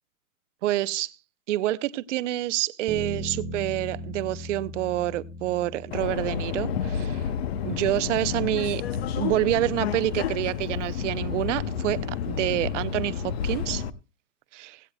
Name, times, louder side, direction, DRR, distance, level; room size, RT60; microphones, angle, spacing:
voice 1, 0.6-1.1 1.5-7.2 7.6-8.8 9.2-13.8 14.5-14.8, right 15 dB, 55° right, 16 dB, 0.6 m, -27 dB
sound 1, 2.9-7.2, equal, 10° right, 1.4 m, -38 dB
Subway metro underground, 5.9-13.9, left 7 dB, 45° left, 0.7 m, -30 dB
17.0 x 16.5 x 2.2 m, 0.30 s
hypercardioid pair, 155°, 45 cm